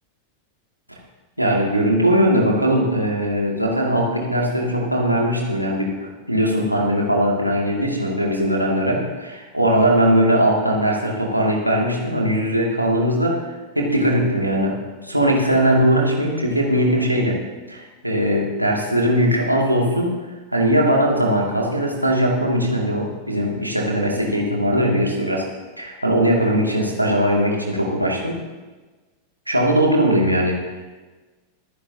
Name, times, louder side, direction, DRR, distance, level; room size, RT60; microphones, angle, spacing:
voice 1, 1.4-14.8 15.0-17.4 17.7-20.1 20.5-25.5 25.8-28.4 29.5-31.0, equal, 90° right, -2 dB, 2.4 m, -20 dB
25.5 x 9.9 x 2.8 m, 1.3 s
figure-of-eight pair, 90°, 0 cm